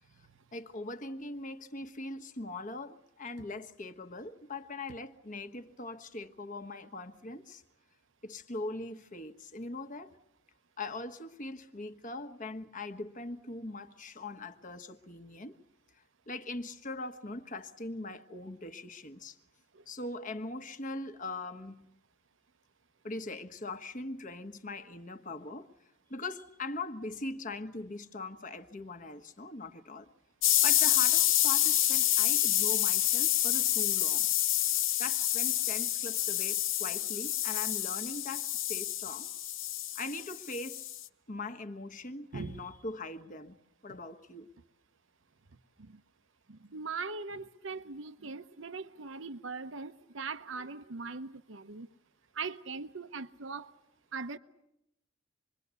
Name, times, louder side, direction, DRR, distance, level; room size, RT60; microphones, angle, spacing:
voice 1, 0.5-7.6 8.2-10.1 10.8-15.5 16.3-19.4 19.9-21.9 23.0-25.7 26.1-30.1 30.6-34.3 35.0-39.3 39.9-40.9 41.3-43.6 43.8-44.5, left 2 dB, 40° left, 1.3 m, -41 dB
sound 1, 30.4-41.0, left 13 dB, 85° left, 0.9 m, -28 dB
voice 2, 42.3-42.7 45.8-46.0 46.5-51.9 52.3-53.7 54.1-54.4, right 4 dB, 80° right, 0.9 m, -40 dB
26.5 x 22.0 x 8.2 m
head